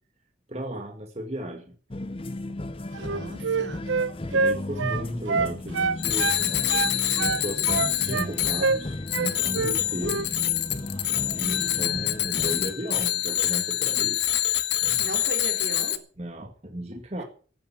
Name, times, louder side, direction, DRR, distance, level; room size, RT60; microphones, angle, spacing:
voice 1, 0.5-1.8 4.3-6.6 7.2-10.2 11.3-14.2 14.8-15.2 16.2-17.2, equal, 35° right, 2.0 m, -35 dB
sound 1, 1.9-12.7, left 2 dB, 30° left, 0.6 m, -36 dB
Wind instrument woodwind instrument, 2.9-6.4 6.7-8.3 8.6-8.8 9.1-9.8 10.0-10.3, right 4 dB, 85° right, 0.6 m, -26 dB
voice 2, 3.0-3.9 15.0-16.1 17.2-17.3, right 1 dB, 65° right, 3.3 m, -37 dB
Bicycle bell, 6.0-16.0, left 13 dB, 65° left, 1.3 m, -26 dB
15.0 x 9.1 x 7.4 m
head